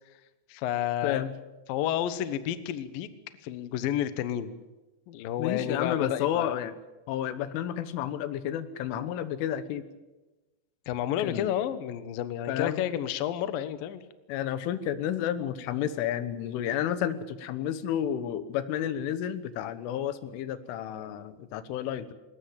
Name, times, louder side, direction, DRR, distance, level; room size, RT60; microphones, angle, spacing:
voice 1, 0.5-1.3 1.7-3.1 3.4-4.5 5.1-6.6 10.9-14.0, left 11 dB, 70° left, 12 dB, 2.3 m, -31 dB
voice 2, 1.0-1.3 5.4-6.7 7.1-9.9 11.2-11.5 12.5-12.8 14.3-22.1, left 10 dB, 85° left, 13 dB, 3.7 m, -31 dB
21.0 x 19.5 x 8.7 m, 1.1 s
omnidirectional pair, 5.6 m